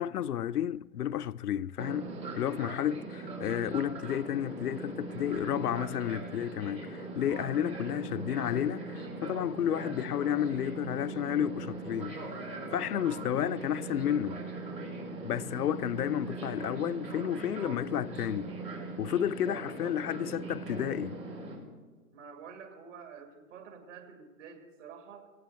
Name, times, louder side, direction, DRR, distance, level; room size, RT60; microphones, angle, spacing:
voice 1, 0.0-14.4 15.2-18.5 19.0-21.2, left 10 dB, 75° left, 0.6 m, -32 dB
Fixed-wing aircraft airplane, 1.8-21.6, right 3 dB, 85° right, 4.7 m, -40 dB
voice 2, 22.1-25.3, right 6 dB, 50° right, 2.5 m, -49 dB
17.0 x 16.5 x 4.5 m
hypercardioid pair, 130°, 47 cm